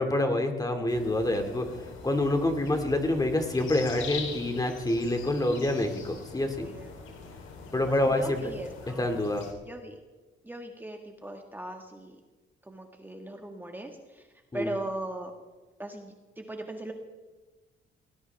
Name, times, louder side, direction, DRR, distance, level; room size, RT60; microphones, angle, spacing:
voice 1, 0.0-1.7 2.0-6.6 7.7-8.5 9.0-9.5 14.5-14.7, left 1 dB, 20° left, 5 dB, 2.4 m, -27 dB
sound 1, 0.9-9.5, left 5 dB, 80° left, 3.8 m, -43 dB
voice 2, 6.6-6.9 7.9-9.0 9.7-10.0 10.4-12.1 12.7-14.2 14.5-15.3 15.8-16.9, right 1 dB, 10° right, 3 dB, 1.8 m, -39 dB
19.0 x 19.0 x 3.5 m, 1.2 s
cardioid pair, 90°, 20 cm